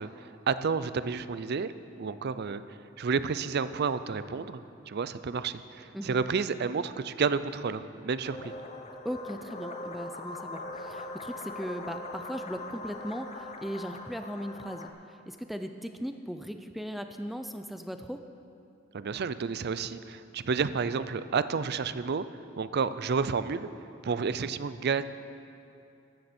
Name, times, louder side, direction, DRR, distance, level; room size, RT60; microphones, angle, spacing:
voice 1, 0.0-1.7 2.0-2.6 3.0-8.5 18.9-22.2 22.6-23.7 24.0-25.1, right 5 dB, 55° right, 14 dB, 0.5 m, -30 dB
sound 1, 8.2-14.9, left 2 dB, 35° left, 0.8 m, -41 dB
voice 2, 9.0-18.2, equal, ahead, 7 dB, 0.4 m, -38 dB
14.5 x 13.0 x 4.3 m, 2.7 s
head